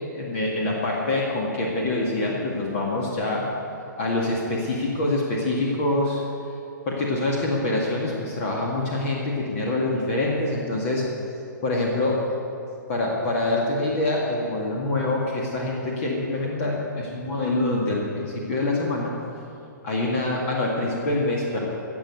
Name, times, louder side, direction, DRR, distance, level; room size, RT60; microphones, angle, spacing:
voice 1, 0.1-3.5 4.0-6.2 6.9-11.0 11.6-12.2 12.9-19.1 19.8-21.7, left 2 dB, 40° left, -2 dB, 2.0 m, -25 dB
16.5 x 7.2 x 8.1 m, 2.7 s
figure-of-eight pair, 120°, 11 cm